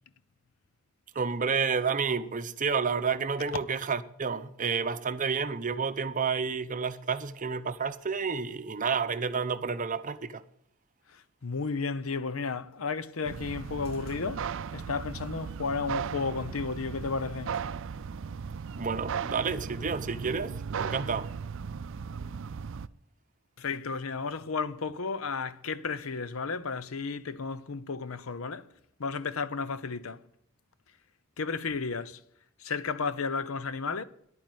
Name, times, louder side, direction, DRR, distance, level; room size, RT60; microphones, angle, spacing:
voice 1, 1.1-10.4 18.7-21.3, right 5 dB, 40° right, 0.8 m, -30 dB
voice 2, 11.1-14.5 14.7-17.6 23.6-28.7 29.0-30.2 31.4-32.2 32.6-34.0, left 4 dB, 70° left, 0.8 m, -33 dB
sound 1, 13.2-22.9, right 6 dB, 60° right, 0.5 m, -37 dB
10.5 x 9.4 x 9.3 m
head